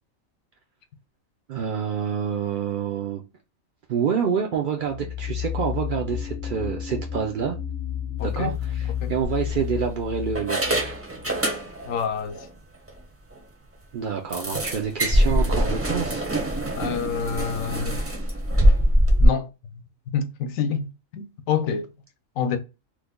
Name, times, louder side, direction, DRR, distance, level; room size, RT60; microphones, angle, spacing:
voice 1, 1.5-3.2 3.9-7.6 8.2-11.0 13.9-16.2, right 7 dB, 80° right, 0.4 m, -27 dB
sound 1, 4.8-11.4, left 9 dB, 45° left, 0.6 m, -31 dB
voice 2, 8.2-8.5 9.0-9.1 11.9-12.4 16.7-18.0 19.2-19.8 20.1-21.9 22.4-22.6, left 7 dB, 75° left, 1.0 m, -27 dB
sound 2, 8.3-8.5 9.2-9.9 10.3-12.0 12.3-12.5 12.9-13.0 13.3-13.4 14.3-19.3, equal, 20° right, 0.4 m, -23 dB
3.1 x 2.2 x 3.5 m
omnidirectional pair, 1.4 m